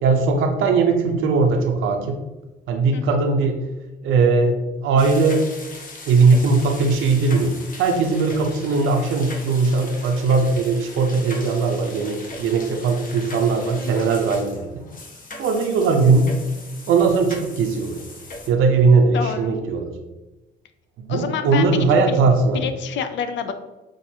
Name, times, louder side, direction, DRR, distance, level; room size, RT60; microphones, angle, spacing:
voice 1, 0.0-2.2 2.7-3.6 4.0-5.4 6.1-7.5 7.8-14.7 15.4-16.3 16.9-18.0 18.5-19.9 21.0-22.6, right 4 dB, 85° right, 4 dB, 0.7 m, -19 dB
sound 1, 5.0-18.5, left 2 dB, 45° left, 0.9 m, -39 dB
voice 2, 19.1-19.6 21.1-22.2 22.5-23.5, left 7 dB, 70° left, 8 dB, 0.5 m, -28 dB
6.2 x 2.5 x 2.8 m, 1.1 s
cardioid pair, 90°, 20 cm